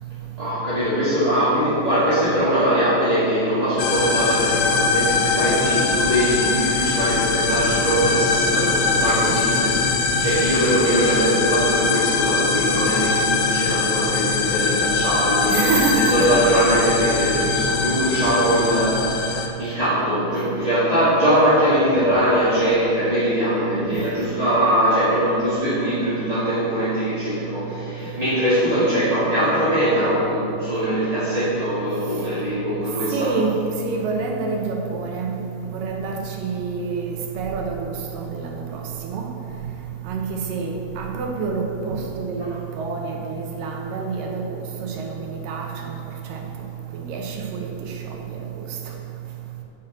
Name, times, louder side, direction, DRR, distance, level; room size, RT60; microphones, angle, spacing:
voice 1, 0.4-15.7 15.9-33.3 38.2-38.3 42.4-42.5, equal, 15° right, -13 dB, 1.8 m, -21 dB
sound 1, 3.8-19.5, left 4 dB, 80° left, 3.0 m, -22 dB
voice 2, 15.5-16.2 23.9-24.0 33.1-33.5 33.8-35.4 35.6-39.2 40.1-45.7 46.3-46.4 46.9-47.9, right 4 dB, 70° right, 1 dB, 2.3 m, -27 dB
9.5 x 7.5 x 7.6 m, 2.8 s
omnidirectional pair, 4.9 m